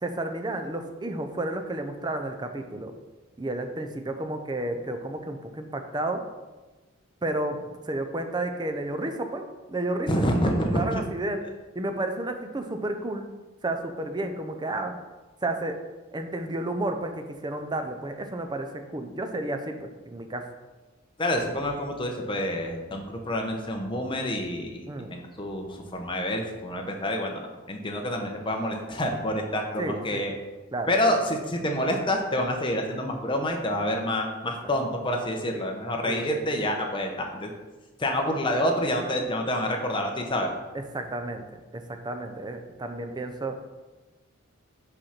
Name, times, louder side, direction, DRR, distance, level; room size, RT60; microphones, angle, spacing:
voice 1, 0.0-2.9 3.4-6.2 7.2-9.4 9.7-10.2 10.6-11.4 11.7-13.2 13.6-14.9 15.4-15.8 16.1-18.7 18.9-20.5 24.9-25.2 29.8-30.3 30.7-30.9 36.0-36.4 40.7-41.4 41.7-43.6, right 2 dB, 20° right, 6 dB, 0.5 m, -31 dB
voice 2, 10.1-11.0 21.2-25.7 25.9-30.3 30.9-37.5 38.0-40.5, left 1 dB, 25° left, 2 dB, 0.8 m, -28 dB
5.3 x 4.2 x 5.9 m, 1.2 s
head